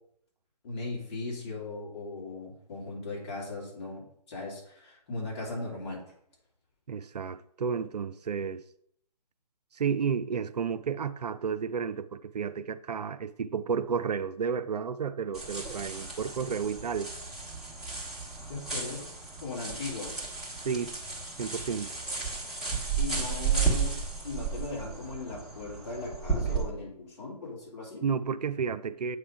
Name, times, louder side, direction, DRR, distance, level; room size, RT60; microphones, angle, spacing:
voice 1, 0.6-6.0 18.5-19.1 19.4-20.2 23.0-28.0, left 3 dB, 40° left, 2.7 m, -38 dB
voice 2, 6.9-8.6 9.7-17.1 20.6-21.0 21.4-22.0 28.0-29.2, right 6 dB, 75° right, 0.5 m, -32 dB
sound 1, 15.3-26.6, right 5 dB, ahead, 1.3 m, -33 dB
8.0 x 3.2 x 4.9 m
figure-of-eight pair, 145°, 21 cm